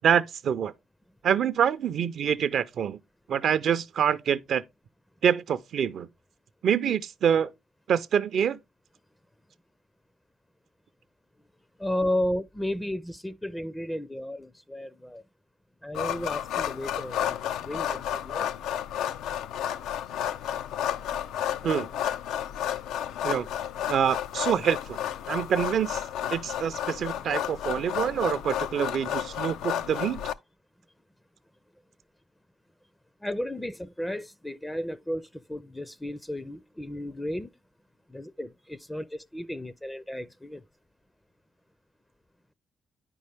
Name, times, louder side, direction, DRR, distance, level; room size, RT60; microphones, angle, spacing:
voice 1, 0.0-0.7 1.2-3.0 3.3-4.6 5.2-6.1 6.6-7.5 7.9-8.6 21.6-21.9 23.2-23.5 23.9-25.0 25.3-26.0 26.3-30.2, right 8 dB, 65° right, 0.4 m, -26 dB
voice 2, 11.8-15.2 15.8-18.5 33.2-37.5 38.1-40.6, left 1 dB, 10° left, 0.4 m, -33 dB
sound 1, 15.9-30.3, left 10 dB, 90° left, 0.4 m, -32 dB
9.1 x 5.4 x 3.3 m
cardioid pair, 90°, 0 cm